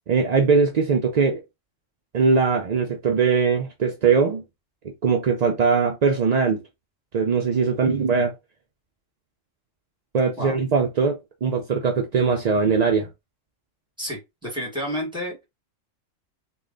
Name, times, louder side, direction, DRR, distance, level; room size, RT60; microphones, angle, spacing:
voice 1, 0.1-1.4 2.1-4.4 5.0-6.6 7.1-8.3 10.1-13.1, right 5 dB, 60° right, 0.4 m, -21 dB
voice 2, 14.0-15.4, equal, 5° right, 1.7 m, -30 dB
3.2 x 2.4 x 3.7 m
omnidirectional pair, 1.3 m